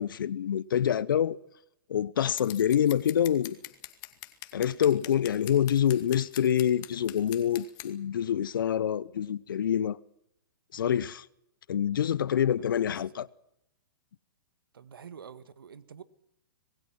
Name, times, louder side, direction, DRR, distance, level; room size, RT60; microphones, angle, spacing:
voice 1, 0.0-1.4 1.9-3.6 4.5-10.0 10.7-11.2 11.7-13.3, left 9 dB, 70° left, 0.9 m, -26 dB
Scissors, 2.4-7.9, left 18 dB, 35° left, 2.2 m, -43 dB
voice 2, 12.6-13.3 14.7-16.0, right 7 dB, 80° right, 1.8 m, -48 dB
26.0 x 20.5 x 6.0 m
hypercardioid pair, 125°, 12 cm